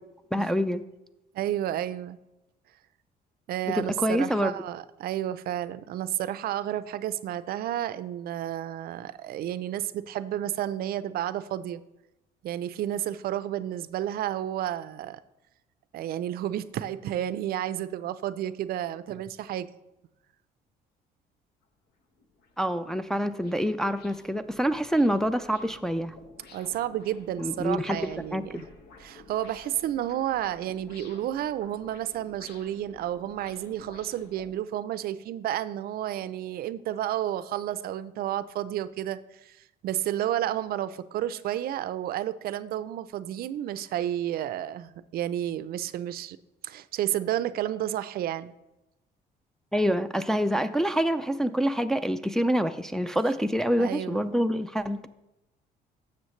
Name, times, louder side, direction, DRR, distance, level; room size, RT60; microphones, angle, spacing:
voice 1, 0.3-0.8 3.7-4.5 22.6-26.2 27.4-28.7 49.7-55.1, equal, 5° left, 7 dB, 0.4 m, -26 dB
voice 2, 1.3-2.2 3.5-11.8 12.4-15.2 15.9-19.7 26.5-28.6 29.0-39.6 39.8-46.4 46.6-48.5 53.8-54.2, right 12 dB, 65° right, 15 dB, 0.5 m, -31 dB
sound 1, 21.6-21.7 22.2-34.5, left 3 dB, 75° left, 1.1 m, -52 dB
12.0 x 7.3 x 3.1 m, 0.94 s
cardioid pair, 110°, 17 cm